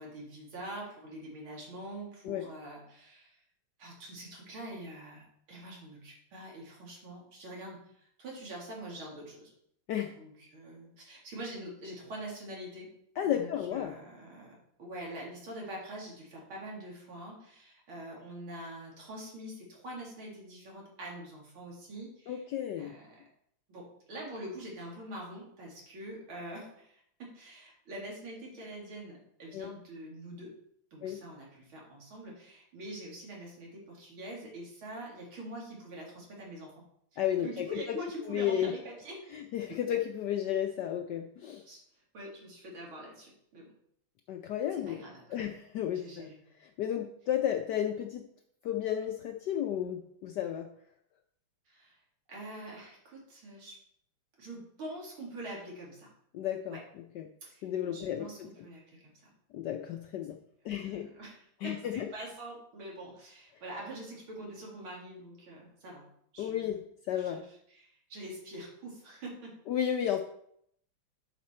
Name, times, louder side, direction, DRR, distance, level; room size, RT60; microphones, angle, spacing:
voice 1, 0.0-3.4 3.8-9.5 10.2-12.9 13.3-22.4 22.8-23.3 23.7-30.6 30.9-36.7 37.1-39.3 39.7-39.8 41.7-41.8 42.1-43.7 44.8-45.5 45.9-46.4 51.7-52.0 52.3-53.8 54.4-56.1 56.7-56.8 57.4-57.7 57.9-59.1 60.7-66.0 66.3-66.8 67.2-69.6, right 1 dB, 70° right, -2 dB, 3.2 m, -45 dB
voice 2, 13.2-14.0 22.3-22.9 29.5-29.7 31.0-31.2 37.2-38.0 38.3-38.7 39.3-41.6 44.3-45.0 45.3-46.3 46.6-48.2 48.6-50.7 56.3-56.8 57.1-57.3 57.6-58.5 59.5-60.4 60.6-61.1 61.6-62.1 66.4-66.8 67.1-67.4 69.7-70.2, left 10 dB, 75° left, 5 dB, 1.0 m, -33 dB
10.5 x 5.2 x 4.3 m, 0.71 s
omnidirectional pair, 2.4 m